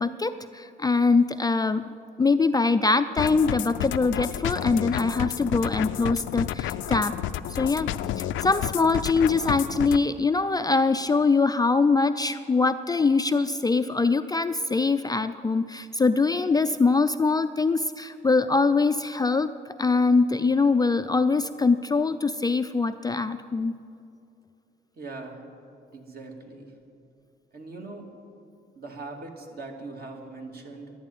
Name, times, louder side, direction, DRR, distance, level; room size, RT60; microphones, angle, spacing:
voice 1, 0.0-1.9 2.2-7.1 7.5-23.8, left 4 dB, 20° left, 10 dB, 0.4 m, -23 dB
sound 1, 3.2-10.0, left 12 dB, 80° left, 0.5 m, -31 dB
voice 2, 24.9-25.4 25.9-26.7 27.5-28.1 28.7-30.9, right 3 dB, 50° right, 2 dB, 2.3 m, -40 dB
11.5 x 11.0 x 9.2 m, 2.6 s
cardioid pair, 90°, 20 cm